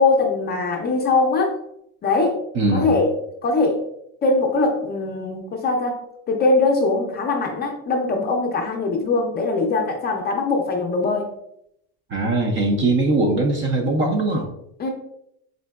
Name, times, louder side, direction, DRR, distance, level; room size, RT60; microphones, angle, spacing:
voice 1, 0.0-1.6 2.0-2.4 2.7-3.1 3.4-3.8 4.2-6.0 6.3-11.3 14.8-14.9, left 3 dB, 25° left, 2 dB, 0.5 m, -21 dB
voice 2, 2.5-3.0 12.1-14.5, right 2 dB, 30° right, 3 dB, 0.4 m, -21 dB
3.7 x 3.2 x 2.3 m, 0.75 s
cardioid pair, 135°, 40 cm